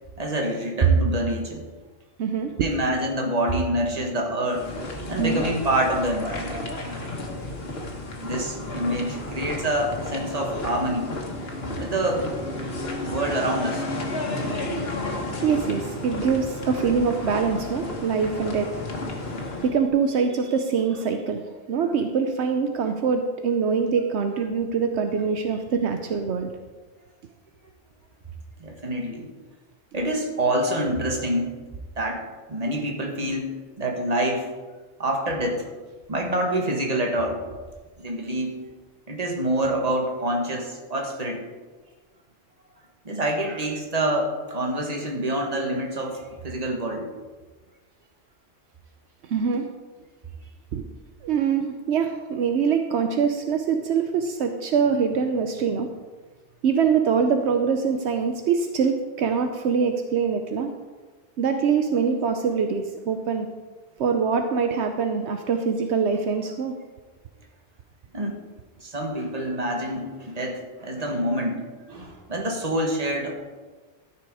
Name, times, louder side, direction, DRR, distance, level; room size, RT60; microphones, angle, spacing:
voice 1, 0.2-1.6 2.6-4.7 5.1-6.6 8.2-11.1 11.8-12.3 13.0-13.8 28.6-29.3 29.9-31.5 32.0-34.5 35.0-35.7 36.1-37.4 38.0-38.7 39.1-41.4 43.0-47.1 68.1-68.4 68.8-73.4, right 1 dB, 35° right, 2 dB, 1.6 m, -26 dB
voice 2, 2.2-2.5 5.2-5.4 15.4-18.7 19.6-21.4 21.7-26.5 49.3-49.7 50.7-50.8 51.2-55.9 56.6-60.7 61.4-63.5 64.0-66.7, right 6 dB, 75° right, 6 dB, 1.0 m, -24 dB
sound 1, 4.5-19.7, left 2 dB, 60° left, 1.7 m, -32 dB
13.0 x 6.1 x 4.8 m, 1.3 s
omnidirectional pair, 1.2 m